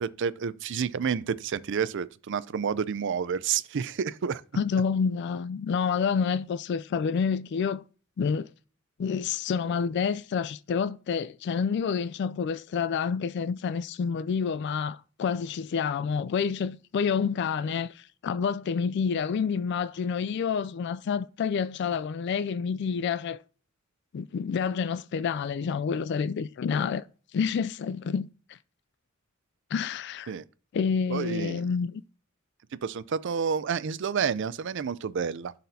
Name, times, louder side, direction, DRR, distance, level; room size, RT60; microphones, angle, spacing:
voice 1, 0.0-4.4 30.3-30.4 31.1-31.6 32.8-35.5, right 6 dB, 60° right, 0.4 m, -29 dB
voice 2, 4.6-7.8 8.2-8.5 9.0-23.4 24.1-27.0 27.3-28.3 29.7-30.3 30.7-32.0, left 6 dB, 55° left, 0.3 m, -28 dB
11.5 x 4.2 x 2.7 m
head